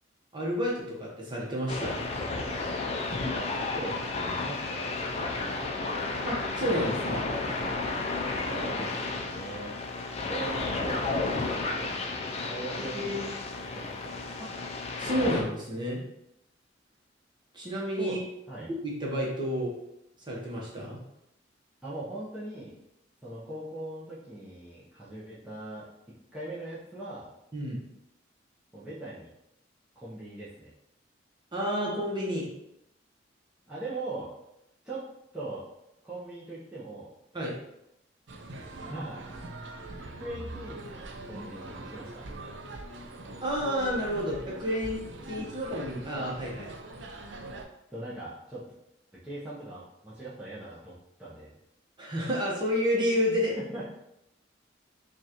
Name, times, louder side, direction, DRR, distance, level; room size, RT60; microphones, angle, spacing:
voice 1, 0.3-2.0 6.2-7.2 12.8-13.3 14.4-14.5 15.0-16.0 17.5-18.2 18.8-19.7 20.2-21.0 27.5-27.8 31.5-32.5 37.3-37.6 43.4-46.7 52.0-53.6, equal, 25° right, -4 dB, 1.0 m, -30 dB
sound 1, 1.7-15.4, left 3 dB, 35° left, 0.5 m, -32 dB
voice 2, 3.3-4.0 4.4-5.7 8.5-9.7 10.2-13.3 13.7-14.4 18.0-18.2 18.5-18.7 21.8-22.8 23.2-25.9 26.3-27.3 28.7-29.3 30.0-30.7 33.7-34.3 34.8-35.0 35.3-35.6 36.0-37.1 38.9-39.2 40.0-42.3 47.9-48.6 49.1-51.5 53.6-53.8, right 2 dB, 5° right, -10 dB, 0.8 m, -40 dB
sound 2, 38.3-47.6, right 2 dB, 75° right, 0.5 m, -42 dB
5.4 x 2.4 x 3.0 m, 0.83 s
head